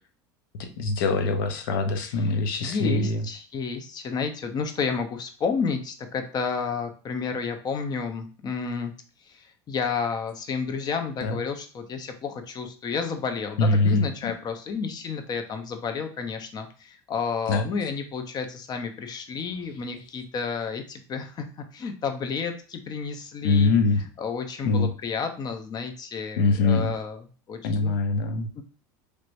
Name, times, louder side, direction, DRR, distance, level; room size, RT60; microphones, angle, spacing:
voice 1, 0.6-3.2 11.2-11.4 13.6-14.3 17.5-17.6 23.4-24.0 24.6-24.9 26.4-26.9 27.6-28.5, left 3 dB, 85° left, 6 dB, 0.7 m, -23 dB
voice 2, 2.0-8.9 9.2-27.9 28.5-28.6, left 5 dB, 35° left, 7 dB, 0.7 m, -31 dB
3.3 x 3.0 x 2.6 m, 0.38 s
supercardioid pair, 105°, 11 cm